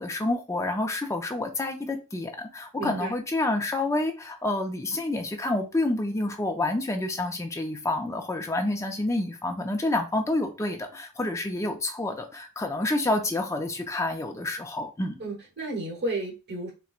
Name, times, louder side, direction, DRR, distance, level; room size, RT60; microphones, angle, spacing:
voice 1, 0.0-15.2, left 2 dB, 15° left, 0.5 m, -28 dB
voice 2, 2.8-3.1 15.2-16.7, right 2 dB, 50° right, 1.1 m, -32 dB
4.3 x 2.2 x 2.4 m
head